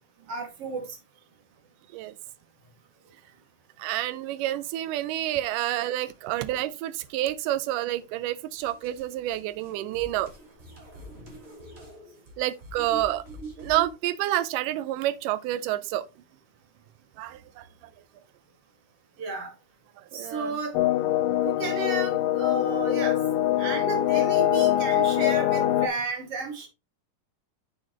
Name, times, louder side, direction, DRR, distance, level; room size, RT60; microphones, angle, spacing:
voice 1, 0.3-0.9 19.2-19.5 20.1-20.8 21.4-23.2 23.6-26.7, right 3 dB, 45° right, 2.6 m, -32 dB
voice 2, 3.8-10.3 12.4-13.2 13.6-16.1 17.2-17.7 20.0-20.6, right 14 dB, 80° right, 2.0 m, -29 dB
sound 1, 8.6-13.9, right 2 dB, 25° right, 3.1 m, -44 dB
sound 2, 20.7-25.9, left 13 dB, 80° left, 2.3 m, -23 dB
7.6 x 7.3 x 3.0 m
omnidirectional pair, 4.1 m